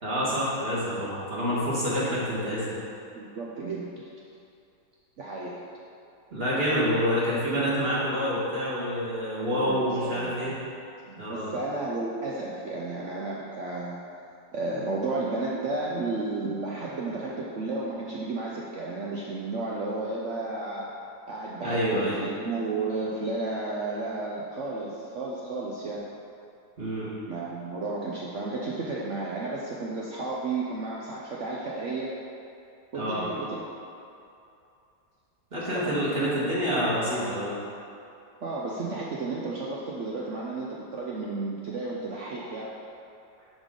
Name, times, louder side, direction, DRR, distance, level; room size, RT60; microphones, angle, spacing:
voice 1, 0.0-2.7 6.3-10.6 11.2-11.5 21.6-22.2 26.8-27.1 32.9-33.2 35.5-37.5, equal, 30° right, -8 dB, 1.7 m, -27 dB
voice 2, 3.1-4.0 5.2-5.6 9.4-10.7 11.1-14.0 14.5-20.9 21.3-26.1 27.3-32.2 32.9-33.6 35.7-35.9 36.2-36.4 38.4-42.7, right 3 dB, 75° right, -4 dB, 0.6 m, -33 dB
10.5 x 3.6 x 3.8 m, 2.6 s
omnidirectional pair, 2.1 m